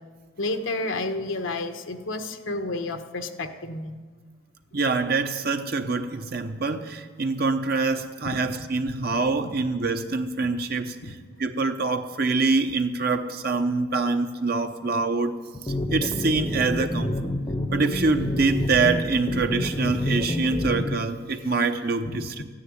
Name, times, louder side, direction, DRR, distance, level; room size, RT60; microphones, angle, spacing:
voice 1, 0.4-4.0 8.2-8.6 11.0-11.2 22.0-22.4, left 2 dB, 80° left, 6 dB, 1.1 m, -31 dB
voice 2, 4.7-15.4 15.6-17.3 17.7-22.4, right 3 dB, 50° right, 6 dB, 0.8 m, -25 dB
sound 1, 15.5-21.0, left 1 dB, 25° left, 0.7 m, -28 dB
14.5 x 10.0 x 9.5 m, 1.5 s
head